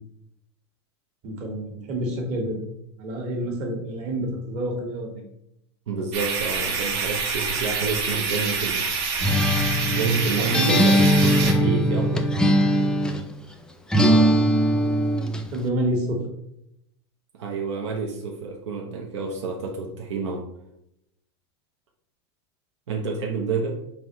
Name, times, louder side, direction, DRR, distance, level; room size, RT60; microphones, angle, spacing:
voice 1, 1.2-2.6 3.0-5.2 9.8-10.0 10.4-10.8 14.0-14.6 15.5-16.2, right 1 dB, 50° right, 1 dB, 1.4 m, -28 dB
voice 2, 5.9-8.9 9.9-12.5 17.3-20.5 22.9-23.8, right 4 dB, 90° right, 0 dB, 0.7 m, -29 dB
sound 1, 6.1-11.5, right 5 dB, 70° right, 1.2 m, -27 dB
Acoustic guitar, 9.2-13.3 13.9-15.5, equal, 5° left, 0.3 m, -20 dB
4.0 x 3.3 x 3.0 m, 0.79 s
supercardioid pair, 120°, 15 cm